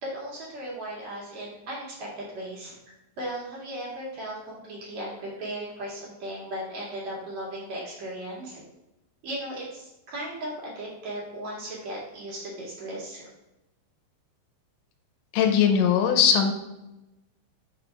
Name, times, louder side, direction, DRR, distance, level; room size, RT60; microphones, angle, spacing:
voice 1, 0.0-2.8 3.2-8.6 9.2-13.3, right 1 dB, 45° right, -5 dB, 2.8 m, -36 dB
voice 2, 15.3-16.5, left 7 dB, 80° left, 5 dB, 2.9 m, -20 dB
7.2 x 7.0 x 2.4 m, 0.97 s
omnidirectional pair, 5.5 m